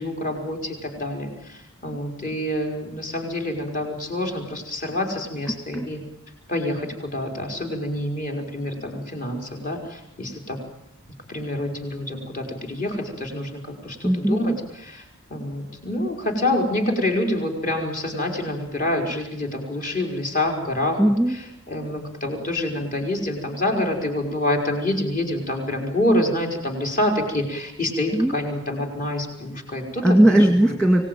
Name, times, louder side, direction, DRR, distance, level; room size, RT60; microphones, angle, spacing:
voice 1, 0.0-6.0 6.5-10.6 11.3-14.5 14.8-15.0 15.3-21.0 21.7-30.4 30.7-30.8, left 1 dB, 35° left, 3 dB, 4.6 m, -27 dB
voice 2, 5.5-5.9 14.0-14.4 21.0-21.4 28.1-28.4 30.0-31.1, right 1 dB, 5° left, 3 dB, 2.0 m, -18 dB
25.0 x 18.5 x 9.1 m, 0.84 s
head